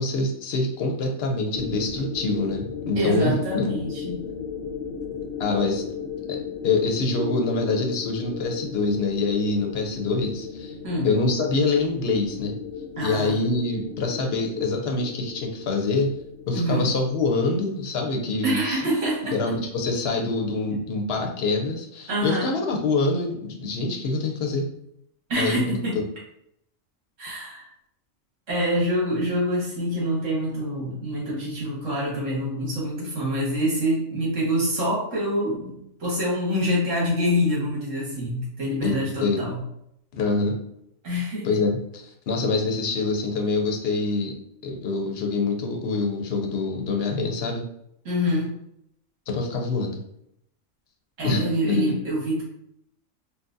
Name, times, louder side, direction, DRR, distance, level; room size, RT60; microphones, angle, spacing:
voice 1, 0.0-3.6 5.4-5.8 6.3-6.4 6.6-10.7 11.0-12.6 13.0-16.1 16.5-18.8 19.3-24.7 25.4-25.7 38.8-39.4 40.1-40.6 41.4-44.3 44.6-47.6 49.3-50.0 51.2-51.9, left 3 dB, 60° left, 2 dB, 0.8 m, -25 dB
sound 1, 1.5-18.5, left 6 dB, 85° left, 1.0 m, -36 dB
voice 2, 3.0-4.2 10.8-11.1 13.0-13.5 16.5-16.9 18.4-19.4 22.1-22.5 25.3-26.0 27.2-27.7 28.5-39.6 41.0-41.5 48.1-48.5 51.2-52.4, equal, 70° right, -5 dB, 1.7 m, -26 dB
4.0 x 2.2 x 2.5 m, 0.75 s
omnidirectional pair, 1.4 m